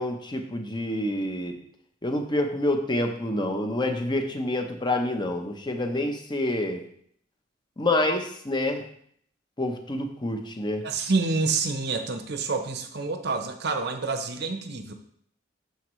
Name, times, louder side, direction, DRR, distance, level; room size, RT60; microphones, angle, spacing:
voice 1, 0.0-1.6 2.0-6.9 7.8-8.9 9.6-10.9, left 1 dB, 25° left, 5 dB, 0.8 m, -27 dB
voice 2, 10.8-14.9, right 4 dB, 60° right, 6 dB, 0.8 m, -28 dB
12.5 x 4.3 x 3.1 m, 0.63 s
head